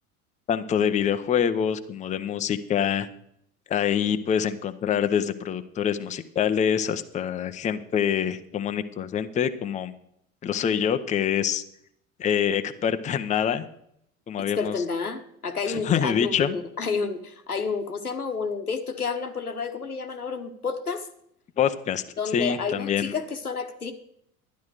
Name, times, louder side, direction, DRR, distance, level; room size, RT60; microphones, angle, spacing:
voice 1, 0.5-3.1 3.7-9.9 10.4-11.6 12.2-13.7 14.3-14.8 15.7-16.6 21.6-23.1, left 8 dB, 15° left, 9 dB, 0.6 m, -25 dB
voice 2, 14.4-21.1 22.2-23.9, left 5 dB, 85° left, 7 dB, 1.1 m, -30 dB
12.0 x 10.5 x 4.8 m, 0.72 s
figure-of-eight pair, 75°, 44 cm